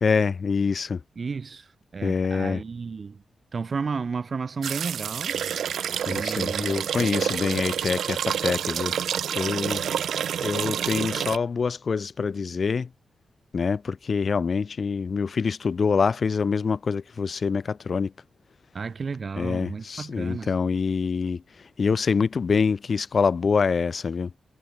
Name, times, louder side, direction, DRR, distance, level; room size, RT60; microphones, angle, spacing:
voice 1, 0.0-1.0 2.0-2.6 6.1-8.9 9.3-9.8 10.4-12.9 13.5-18.1 19.4-21.4 21.8-24.3, left 5 dB, 40° left, 2.5 m, -25 dB
voice 2, 1.2-3.2 3.5-5.4 6.1-7.4 18.7-20.5, right 5 dB, 35° right, 7.4 m, -33 dB
sound 1, 4.6-11.4, right 8 dB, 75° right, 4.8 m, -28 dB
wide cardioid pair, 170°, 0 cm